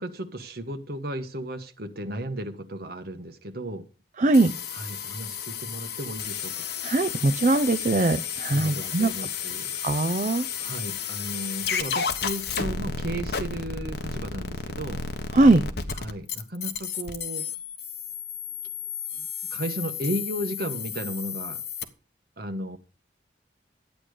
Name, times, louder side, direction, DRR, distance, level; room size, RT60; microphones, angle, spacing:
voice 1, 0.0-3.9 4.7-6.7 8.4-9.7 10.6-15.0 15.9-17.5 19.1-21.6 22.4-22.8, right 1 dB, 60° right, 1.5 m, -34 dB
voice 2, 4.2-4.5 6.8-9.1 9.8-10.4 15.3-15.6, right 2 dB, 45° right, 0.6 m, -21 dB
sound 1, 4.3-21.8, left 6 dB, 65° left, 1.3 m, -32 dB
12.0 x 8.9 x 5.0 m
head